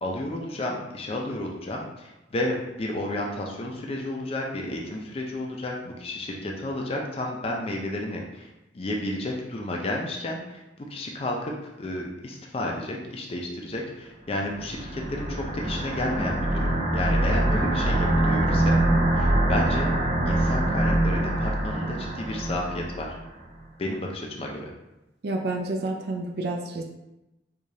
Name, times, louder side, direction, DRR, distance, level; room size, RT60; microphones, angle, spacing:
voice 1, 0.0-18.8 19.1-19.9 20.3-23.2 23.8-24.7, left 1 dB, 35° left, 0 dB, 0.4 m, -32 dB
sound 1, 14.5-23.1, right 1 dB, 45° right, 1.3 m, -24 dB
voice 2, 25.2-26.8, right 2 dB, 60° right, 2 dB, 0.4 m, -29 dB
4.8 x 2.4 x 2.7 m, 0.96 s
head